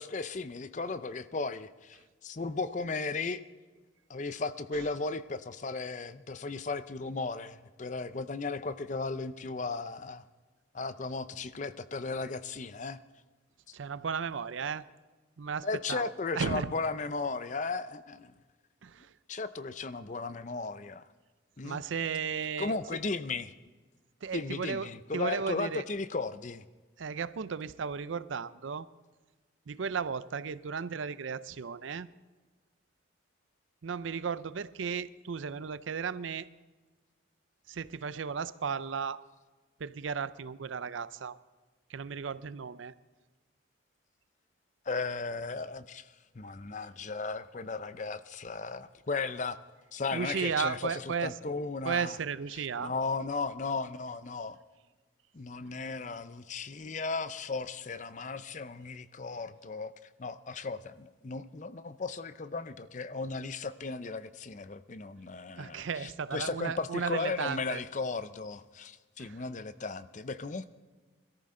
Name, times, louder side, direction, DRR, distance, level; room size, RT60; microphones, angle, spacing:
voice 1, 0.0-3.4 4.1-10.2 10.7-13.0 15.6-18.3 19.3-21.1 21.6-21.8 22.6-23.5 24.3-26.7 44.9-49.6 49.9-52.2 52.5-54.6 55.3-59.9 60.2-70.7, left 4 dB, 40° left, 13 dB, 0.5 m, -36 dB
voice 2, 13.7-14.8 15.4-16.7 18.8-19.1 21.6-22.8 24.2-25.8 27.0-28.9 29.7-32.1 33.8-36.5 37.7-39.2 39.8-41.4 41.9-42.9 50.1-51.3 51.8-52.9 65.6-67.8 69.2-69.4, right 6 dB, 80° right, 16 dB, 0.5 m, -35 dB
21.5 x 14.0 x 3.8 m, 1.3 s
head